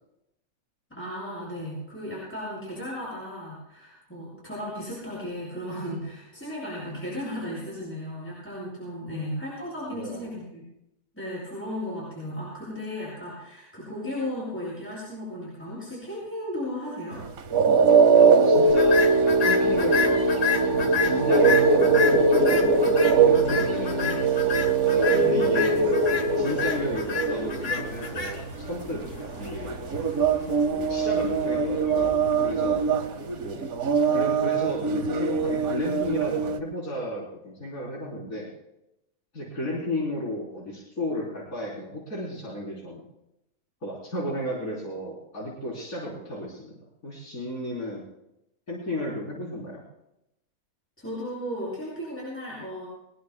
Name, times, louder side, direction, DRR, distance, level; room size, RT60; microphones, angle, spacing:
voice 1, 0.9-10.6 11.1-17.2 25.0-25.4 51.0-52.9, left 1 dB, 10° left, -7 dB, 8.0 m, -35 dB
voice 2, 9.0-9.3 9.9-10.3 18.1-19.1 19.4-20.2 20.8-22.8 23.2-24.2 25.2-25.9 26.4-29.0 29.4-29.8 30.7-32.2 32.4-32.8 33.4-33.6 34.1-38.5 39.3-43.0 43.8-46.8 47.0-48.0 48.7-49.8, left 1 dB, 75° left, -5 dB, 4.4 m, -33 dB
sound 1, 17.2-36.6, right 4 dB, 90° right, 1.5 m, -22 dB
sound 2, 18.7-33.0, left 6 dB, 60° left, 1.7 m, -31 dB
23.0 x 21.5 x 2.3 m, 0.85 s
omnidirectional pair, 1.5 m